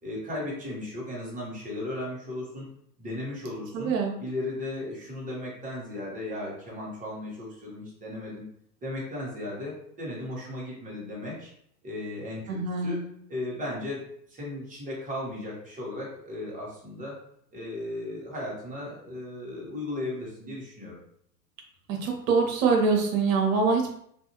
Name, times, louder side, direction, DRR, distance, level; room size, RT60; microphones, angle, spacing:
voice 1, 0.0-2.7 3.0-3.9 4.2-8.4 8.8-11.5 11.8-12.5 12.8-13.0 13.3-14.0 14.3-17.1 17.5-21.0, left 1 dB, 15° right, -4 dB, 1.1 m, -36 dB
voice 2, 3.7-4.2 12.5-13.1 21.9-23.9, right 4 dB, 55° right, 1 dB, 1.0 m, -24 dB
2.6 x 2.5 x 2.9 m, 0.67 s
hypercardioid pair, 110°, 50 cm